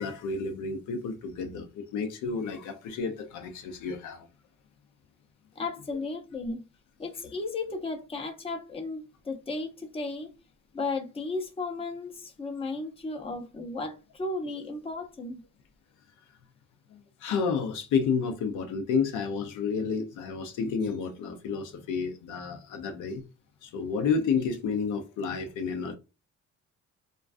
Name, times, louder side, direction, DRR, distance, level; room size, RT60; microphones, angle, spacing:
voice 1, 0.0-4.3 16.9-23.2 23.6-26.0, left 5 dB, 80° left, 0.6 m, -30 dB
voice 2, 5.6-6.6 7.0-10.3 10.7-15.4, left 3 dB, 20° left, 0.6 m, -34 dB
2.3 x 2.3 x 2.4 m
cardioid pair, 90°, 30 cm